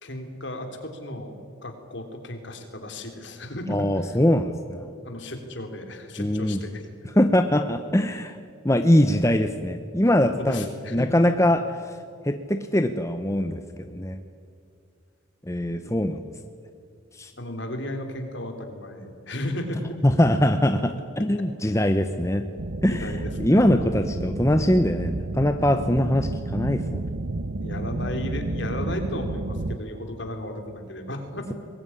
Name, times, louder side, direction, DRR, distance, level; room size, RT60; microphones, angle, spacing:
voice 1, 0.0-1.4 1.6-4.2 5.0-6.9 10.4-11.1 15.8-15.9 17.4-19.8 22.9-23.7 27.6-31.5, left 1 dB, 60° left, 5 dB, 3.6 m, -34 dB
voice 2, 3.7-4.9 6.2-6.6 7.1-8.3 8.6-10.6 10.9-12.0 12.2-14.2 15.5-16.2 17.1-17.3 19.7-22.5 22.8-23.1 23.4-27.1, left 1 dB, 15° left, 7 dB, 0.8 m, -22 dB
sound 1, 22.6-29.8, right 2 dB, 55° right, 0.8 m, -31 dB
23.5 x 20.5 x 9.9 m, 2.3 s
head